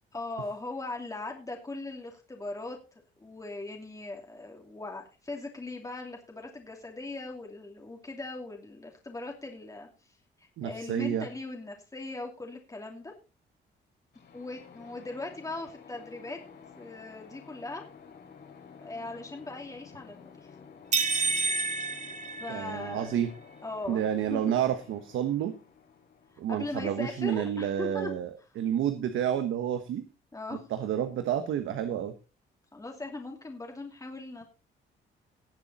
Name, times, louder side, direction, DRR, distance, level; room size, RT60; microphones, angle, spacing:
voice 1, 0.1-2.8 3.2-9.9 10.6-13.1 14.3-16.4 16.8-17.8 18.8-20.5 22.4-23.1 23.6-24.6 26.5-28.1 30.3-30.7 32.7-34.5, left 2 dB, 15° left, 1 dB, 2.8 m, -39 dB
voice 2, 10.6-11.3 22.5-23.3 23.9-25.5 26.4-28.3 28.6-30.1 30.7-32.1, right 10 dB, 80° right, 9 dB, 1.3 m, -29 dB
sound 1, 14.1-27.8, left 6 dB, 60° left, 4.2 m, -52 dB
sound 2, 20.9-23.1, right 4 dB, 35° right, 2.3 m, -29 dB
18.0 x 7.4 x 4.2 m, 0.32 s
cardioid pair, 90°, 20 cm